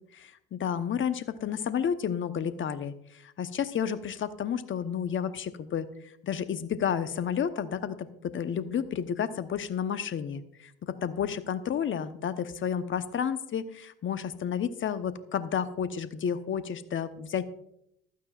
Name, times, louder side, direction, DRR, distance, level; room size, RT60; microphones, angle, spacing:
voice 1, 0.1-2.9 3.4-5.8 6.2-10.4 11.0-17.5, left 8 dB, 40° left, 11 dB, 1.0 m, -31 dB
15.0 x 12.0 x 2.5 m, 0.76 s
hypercardioid pair, 60°, 31 cm